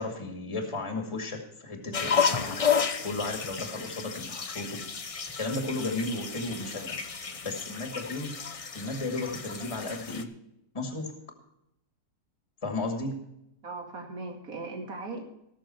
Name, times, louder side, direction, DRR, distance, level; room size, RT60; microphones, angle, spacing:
voice 1, 0.0-2.6 3.0-4.8 5.4-7.0 7.3-8.3 8.7-10.3 10.7-11.1 12.6-13.1, left 2 dB, 20° left, 2 dB, 2.2 m, -34 dB
sound 1, 1.9-10.2, left 6 dB, 60° left, 0.3 m, -32 dB
voice 2, 13.6-15.2, right 3 dB, 55° right, 2 dB, 2.7 m, -38 dB
19.5 x 6.8 x 4.4 m, 0.82 s
omnidirectional pair, 1.8 m